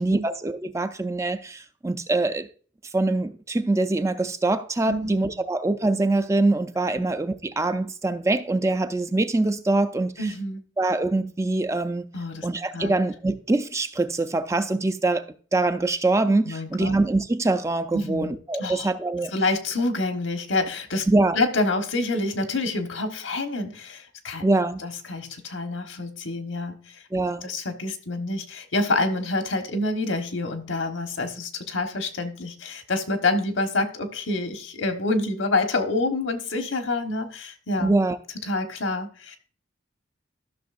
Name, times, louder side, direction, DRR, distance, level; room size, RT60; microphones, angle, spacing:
voice 1, 0.0-2.5 2.9-10.3 10.8-12.1 12.4-15.3 15.5-19.3 21.1-21.4 24.4-24.8 27.1-27.5 37.8-38.2, right 2 dB, 15° right, 0.4 m, -24 dB
voice 2, 10.2-10.6 12.1-12.5 12.7-12.9 16.4-16.9 17.9-18.3 18.6-18.9 19.3-21.1 21.3-24.5 24.8-26.8 27.4-37.9 38.5-39.4, left 2 dB, 85° left, 1.2 m, -27 dB
13.0 x 6.3 x 2.5 m
head